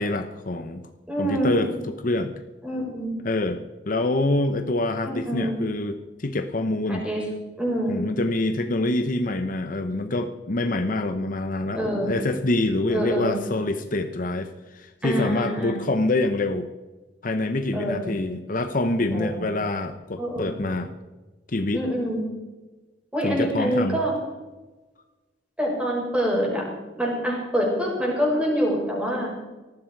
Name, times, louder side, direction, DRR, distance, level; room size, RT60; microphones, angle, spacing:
voice 1, 0.0-0.9 1.2-2.3 3.2-3.6 3.8-7.1 7.9-16.7 17.2-20.9 21.5-21.8 23.2-24.0, left 2 dB, 50° left, 8 dB, 0.9 m, -26 dB
voice 2, 1.1-1.6 2.6-3.1 5.0-5.5 6.9-7.2 7.6-8.0 11.8-12.2 12.9-13.4 15.0-15.8 17.7-18.2 19.1-19.5 20.2-20.7 21.7-22.2 23.1-24.2 25.6-26.6 27.0-29.3, equal, 5° right, -2 dB, 6.0 m, -26 dB
19.0 x 14.5 x 4.7 m, 1.2 s
head